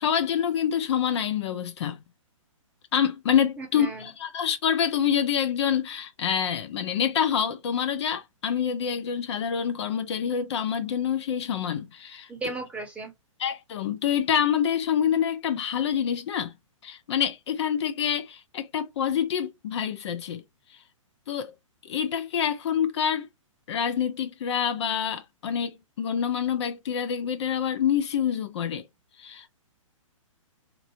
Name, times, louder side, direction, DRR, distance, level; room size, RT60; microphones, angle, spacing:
voice 1, 0.0-2.0 2.9-12.3 13.4-16.5 16.8-20.4 21.3-21.5 21.9-23.3 23.7-28.8 29.2-29.5, left 8 dB, 55° left, 0.6 m, -26 dB
voice 2, 3.6-4.1 12.3-13.1, right 3 dB, 5° right, 1.0 m, -35 dB
3.0 x 2.6 x 2.6 m
hypercardioid pair, 130°, 17 cm